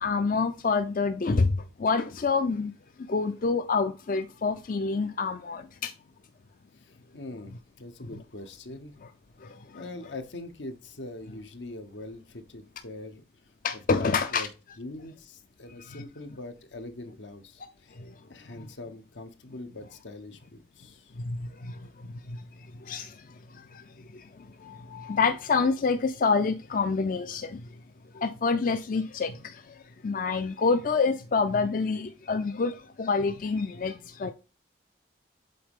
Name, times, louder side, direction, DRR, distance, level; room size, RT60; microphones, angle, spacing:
voice 1, 0.0-2.7 3.1-5.9 9.4-9.8 13.6-14.5 15.9-16.0 18.0-18.1 18.6-18.7 21.2-22.4 22.8-23.8 24.1-27.6 28.1-34.3, left 4 dB, 45° left, 0.4 m, -28 dB
voice 2, 6.7-8.9 9.7-13.2 14.0-14.5 14.8-18.0 18.3-21.1, left 2 dB, 75° left, 1.0 m, -42 dB
7.7 x 4.0 x 3.6 m
head